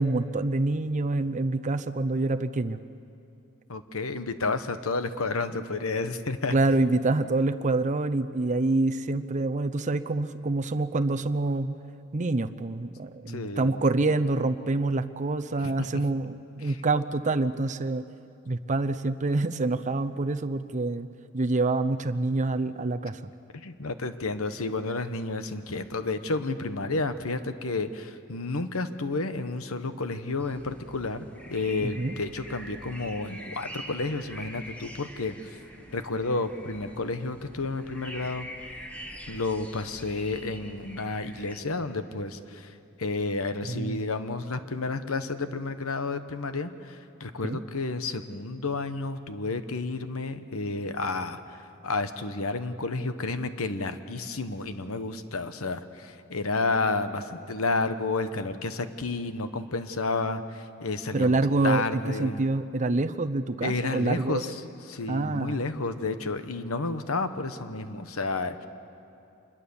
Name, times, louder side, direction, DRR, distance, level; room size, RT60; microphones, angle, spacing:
voice 1, 0.0-2.8 6.5-11.8 12.1-18.0 18.5-21.1 21.3-23.2 31.8-32.2 43.7-44.1 47.4-47.6 61.1-64.4 65.1-65.6, right 2 dB, 35° right, 8 dB, 0.6 m, -26 dB
voice 2, 3.7-6.5 13.3-13.8 15.6-15.7 16.6-16.8 23.5-35.3 35.9-38.5 39.3-62.4 63.6-64.6 64.9-68.7, left 3 dB, 70° left, 10 dB, 1.1 m, -31 dB
sound 1, 30.4-41.6, equal, 5° left, 1.7 m, -44 dB
26.0 x 21.5 x 7.1 m, 2.6 s
head